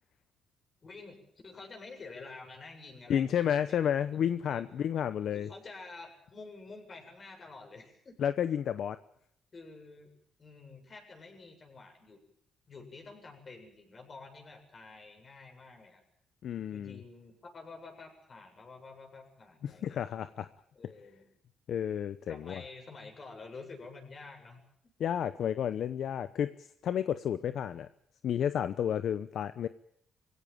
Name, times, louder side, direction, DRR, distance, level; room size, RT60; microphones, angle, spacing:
voice 1, 0.8-1.2 1.4-3.9 4.5-4.6 5.3-8.2 9.5-10.1 10.4-12.2 12.7-16.0 16.7-20.0 20.8-21.3 22.3-24.6, left 3 dB, 40° left, 3 dB, 7.7 m, -49 dB
voice 2, 3.1-5.5 8.2-9.0 16.4-17.0 19.6-20.5 21.7-22.6 25.0-26.5 26.8-27.9 28.2-29.7, left 9 dB, 70° left, 12 dB, 0.8 m, -31 dB
23.5 x 16.5 x 9.0 m, 0.70 s
cardioid pair, 90°, 0 cm